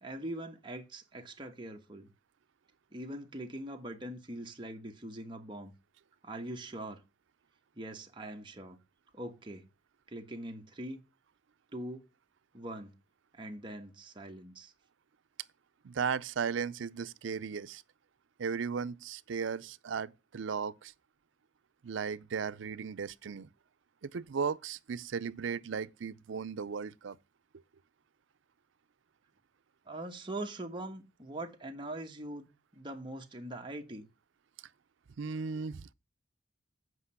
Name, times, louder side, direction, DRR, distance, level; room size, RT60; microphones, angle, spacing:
voice 1, 0.0-2.1 2.9-5.7 6.2-7.0 7.7-8.8 9.1-9.7 10.1-11.0 11.7-12.1 12.5-12.9 13.3-14.7 29.9-34.1, right 1 dB, 25° right, 1.2 m, -42 dB
voice 2, 15.8-17.8 18.4-20.9 21.8-23.5 24.0-27.2 35.2-35.9, right 6 dB, 75° right, 0.5 m, -36 dB
8.1 x 5.3 x 5.6 m
head